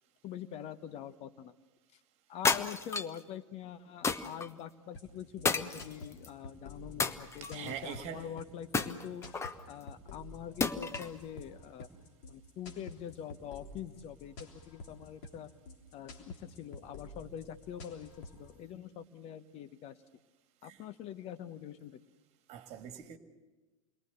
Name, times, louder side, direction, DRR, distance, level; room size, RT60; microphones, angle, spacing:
voice 1, 0.2-1.5 2.3-9.2 9.7-11.9 12.3-15.5 15.9-20.0 20.6-22.0, left 9 dB, 40° left, 1.0 m, -44 dB
sound 1, 2.4-3.2 4.0-4.5 5.4-6.3 7.0-7.7 8.7-9.6 10.6-11.2, left 4 dB, 15° left, 1.1 m, -32 dB
sound 2, 4.9-18.5, left 2 dB, 55° left, 3.4 m, -50 dB
voice 2, 7.4-8.3 20.6-20.8 22.5-23.2, right 8 dB, 40° right, 2.0 m, -43 dB
28.5 x 22.0 x 6.9 m
figure-of-eight pair, 90°, 17 cm